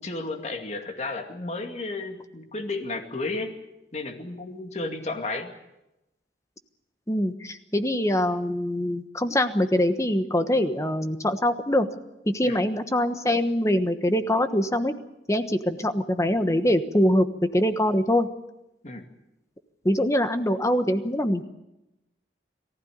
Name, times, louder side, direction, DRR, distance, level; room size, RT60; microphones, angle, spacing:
voice 1, 0.0-3.6 3.9-5.5 12.4-12.6 18.8-19.0, left 2 dB, 40° left, 4 dB, 2.3 m, -33 dB
voice 2, 7.1-11.9 12.3-14.9 15.3-17.2 17.5-18.3 19.8-21.4, left 1 dB, 15° left, 9 dB, 1.2 m, -23 dB
23.0 x 15.5 x 9.5 m, 0.92 s
head